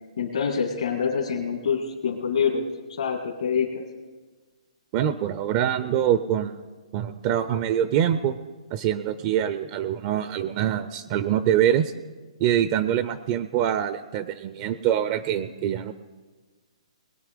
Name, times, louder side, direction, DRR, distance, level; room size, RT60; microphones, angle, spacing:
voice 1, 0.2-3.8, left 6 dB, 70° left, 0 dB, 1.8 m, -26 dB
voice 2, 4.9-6.6 6.9-8.4 8.7-11.9 12.4-15.9, right 10 dB, 30° right, 12 dB, 0.4 m, -24 dB
21.0 x 8.7 x 5.1 m, 1.4 s
hypercardioid pair, 155°, 4 cm